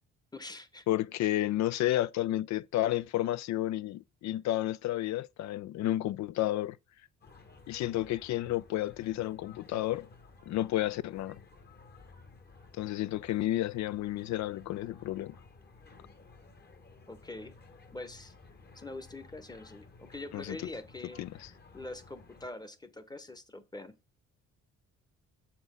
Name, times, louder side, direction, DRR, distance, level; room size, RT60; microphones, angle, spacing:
voice 1, 0.3-0.8 1.2-1.3 17.1-17.5 17.9-18.3 18.7-21.2 21.7-24.0, left 2 dB, 15° left, 0.9 m, -44 dB
voice 2, 0.9-6.8 7.7-10.1 10.5-11.4 12.8-15.4 20.3-20.6 21.2-21.5, left 14 dB, 65° left, 0.4 m, -31 dB
sound 1, 7.2-22.5, left 3 dB, 35° left, 1.1 m, -55 dB
6.9 x 4.3 x 5.2 m
cardioid pair, 90°, 30 cm